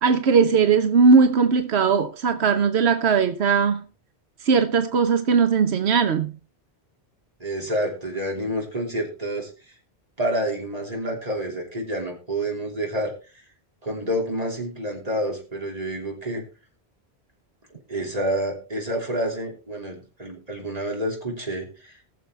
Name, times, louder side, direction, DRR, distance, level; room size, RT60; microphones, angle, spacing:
voice 1, 0.0-3.8 4.4-6.3, right 5 dB, 90° right, 1.1 m, -19 dB
voice 2, 7.4-9.7 10.2-13.4 13.8-16.4 17.9-22.0, right 1 dB, 35° right, 3.4 m, -28 dB
20.0 x 6.9 x 3.2 m
omnidirectional pair, 1.1 m